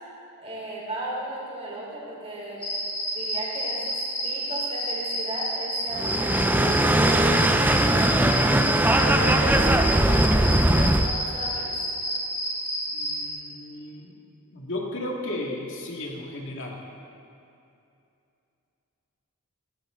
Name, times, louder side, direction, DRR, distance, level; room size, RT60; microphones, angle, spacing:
voice 1, 0.4-2.6 3.1-8.3 8.6-11.7, right 2 dB, 25° right, -5 dB, 4.4 m, -35 dB
sound 1, 2.6-13.3, equal, 25° left, 4.1 m, -30 dB
sound 2, 5.9-11.1, right 1 dB, 10° right, 0.5 m, -20 dB
voice 2, 12.9-14.1 14.5-16.8, left 1 dB, 60° left, -1 dB, 2.4 m, -34 dB
17.0 x 17.0 x 3.9 m, 2.7 s
head